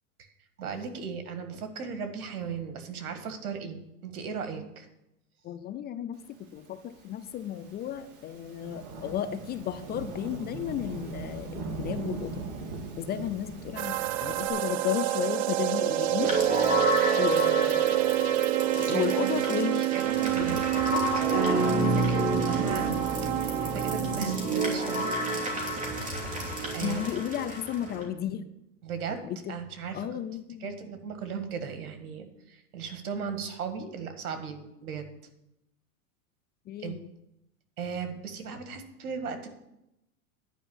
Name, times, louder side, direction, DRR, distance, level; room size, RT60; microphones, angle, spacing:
voice 1, 0.6-4.9 18.9-25.2 26.7-27.0 28.8-29.2 29.5-30.1 30.6-35.1 36.8-37.0 37.8-39.6, right 6 dB, 85° right, 7 dB, 1.8 m, -36 dB
voice 2, 5.4-12.4 13.0-16.3 17.2-18.0 18.8-19.9 20.4-20.6 26.8-28.5 29.2-29.5 29.9-30.8 36.7-37.0, left 10 dB, 25° left, 12 dB, 0.4 m, -33 dB
Thunderstorm / Rain, 6.8-14.5, right 3 dB, 45° right, 2.1 m, -40 dB
sound 1, 13.8-24.3, right 15 dB, 60° right, 0.6 m, -27 dB
sound 2, 16.2-28.0, right 1 dB, 20° right, 2.9 m, -30 dB
10.0 x 5.4 x 8.4 m, 0.87 s
hypercardioid pair, 120°, 43 cm